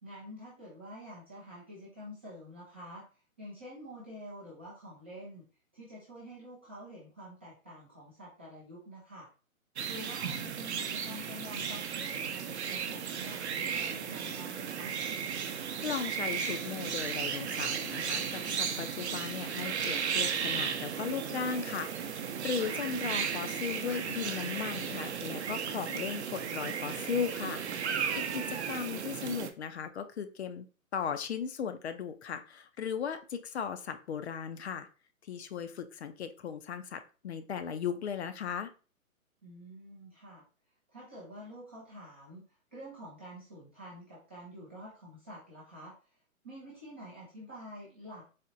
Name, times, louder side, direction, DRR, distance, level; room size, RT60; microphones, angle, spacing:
voice 1, 0.0-3.0 3.4-5.5 5.7-9.3 9.9-14.9 28.5-28.7 39.4-40.4 40.9-42.4 42.7-45.9 46.4-48.2, equal, 10° right, -9 dB, 0.4 m, -48 dB
sound 1, 9.8-29.5, right 7 dB, 50° right, 0.6 m, -35 dB
voice 2, 15.5-30.7 30.9-34.9 35.2-38.7, left 7 dB, 50° left, 9 dB, 0.5 m, -37 dB
4.2 x 2.8 x 2.5 m, 0.35 s
figure-of-eight pair, 135°, 42 cm